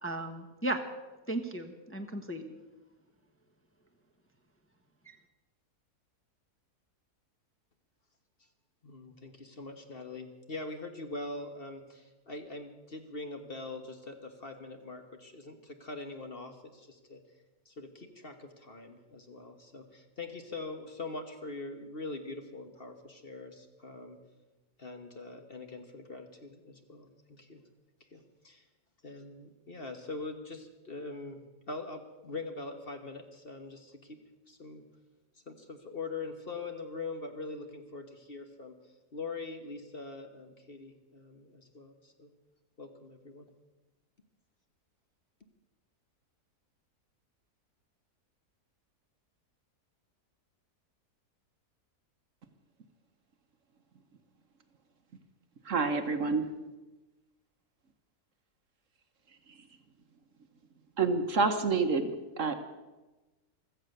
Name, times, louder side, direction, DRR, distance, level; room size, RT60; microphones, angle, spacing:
voice 1, 0.0-0.8 1.3-2.4 5.1-5.2, right 1 dB, 10° left, 2 dB, 1.0 m, -35 dB
voice 2, 8.8-17.2 17.6-24.2 24.8-27.6 28.1-28.6 29.0-31.4 31.7-34.2 34.5-34.8 35.5-38.7 39.1-42.3 42.8-43.5, left 3 dB, 40° left, 6 dB, 1.4 m, -43 dB
voice 3, 55.6-56.5 61.0-62.5, right 4 dB, 55° right, 8 dB, 1.3 m, -28 dB
16.0 x 13.5 x 6.6 m, 1.1 s
omnidirectional pair, 1.7 m